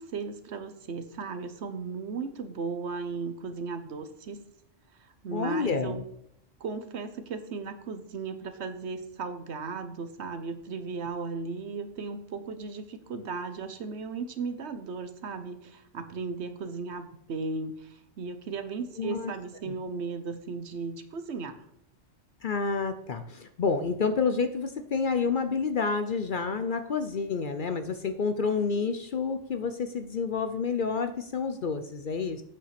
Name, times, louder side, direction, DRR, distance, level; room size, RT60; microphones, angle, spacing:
voice 1, 0.0-4.4 5.2-6.1 6.6-21.6, right 4 dB, 65° right, 9 dB, 1.1 m, -36 dB
voice 2, 5.3-6.0 19.0-19.3 19.7-19.8 22.4-32.4, left 5 dB, 50° left, 9 dB, 0.7 m, -29 dB
8.7 x 5.4 x 5.9 m, 0.76 s
omnidirectional pair, 1.3 m